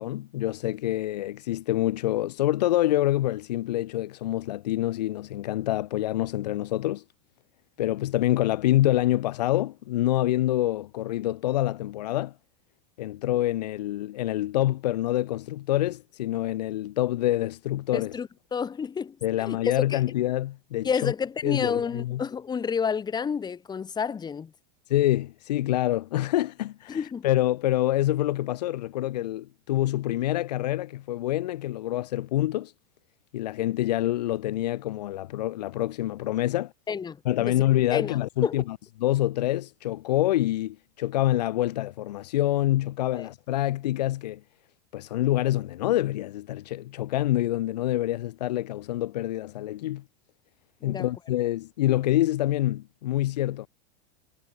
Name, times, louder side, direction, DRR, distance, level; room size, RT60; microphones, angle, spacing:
voice 1, 0.0-7.0 7.8-12.3 13.0-18.1 19.2-21.1 21.4-22.2 24.9-32.7 33.3-36.7 37.2-44.4 44.9-50.0 50.8-53.7, left 14 dB, 75° left, 1.3 m, -26 dB
voice 2, 17.9-19.6 19.9-20.0 20.8-24.5 26.9-27.2 36.9-37.6 37.9-38.2 38.4-38.6 43.1-43.3 50.8-51.1, left 6 dB, 20° left, 1.4 m, -30 dB
hypercardioid pair, 100°, 21 cm